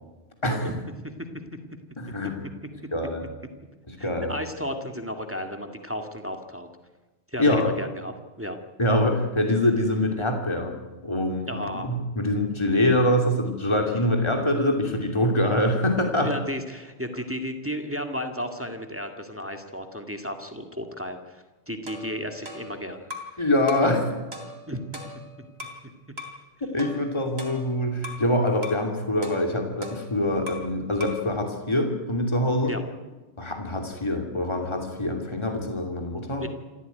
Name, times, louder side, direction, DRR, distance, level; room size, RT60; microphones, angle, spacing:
voice 1, 1.0-1.5 4.0-6.7 7.3-8.6 11.5-12.0 16.2-23.1 24.7-25.0 25.4-25.5 25.8-25.9 32.6-32.8 36.4-36.5, equal, 10° right, 5 dB, 2.0 m, -34 dB
voice 2, 2.0-2.4 2.9-3.2 3.9-4.3 7.4-7.7 8.8-10.8 11.0-11.5 11.8-16.3 23.4-24.0 26.7-32.7 33.4-36.4, left 1 dB, 25° left, 3 dB, 2.9 m, -24 dB
sound 1, 21.9-23.4 23.7-24.0 24.3-25.8 26.2-26.4 26.8-28.3 28.6-28.9 29.2-30.7 31.0-31.3, left 2 dB, 65° right, 3.4 m, -40 dB
27.0 x 14.5 x 9.4 m, 1.2 s
omnidirectional pair, 1.2 m